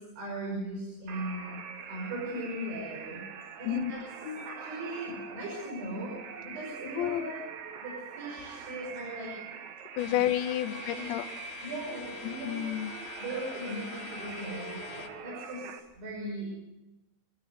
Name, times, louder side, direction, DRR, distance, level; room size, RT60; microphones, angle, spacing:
voice 1, 0.0-1.5 1.9-3.2 3.6-4.0 4.4-6.2 6.4-7.4 7.8-9.3 10.1-10.2 10.6-11.1 11.6-12.6 13.2-15.7 16.0-16.5, right 1 dB, 80° right, -3 dB, 8.5 m, -38 dB
sound 1, 1.1-15.8, right 6 dB, 65° right, 2.8 m, -43 dB
voice 2, 7.0-7.3 10.0-11.3 12.2-13.0, left 12 dB, 80° left, 10 dB, 3.0 m, -31 dB
sound 2, 10.0-15.1, left 9 dB, 60° left, 2.7 m, -45 dB
29.0 x 11.5 x 8.2 m, 0.98 s
omnidirectional pair, 5.3 m